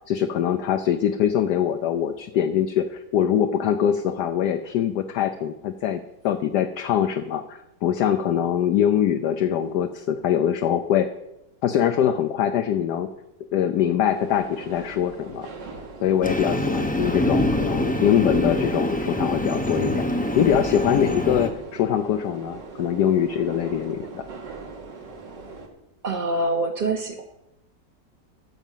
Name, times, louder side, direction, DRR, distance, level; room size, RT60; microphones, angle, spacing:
voice 1, 0.1-11.1 11.6-13.1 13.5-15.5 16.0-20.1 20.3-24.2, left 9 dB, 70° left, 7 dB, 1.2 m, -23 dB
sound 1, 14.1-25.7, right 4 dB, 80° right, 2.2 m, -41 dB
Train, 16.2-21.5, left 1 dB, 10° left, 0.4 m, -25 dB
voice 2, 26.0-27.2, right 2 dB, 40° right, 1 dB, 0.7 m, -25 dB
13.5 x 5.1 x 7.4 m, 0.90 s
omnidirectional pair, 1.9 m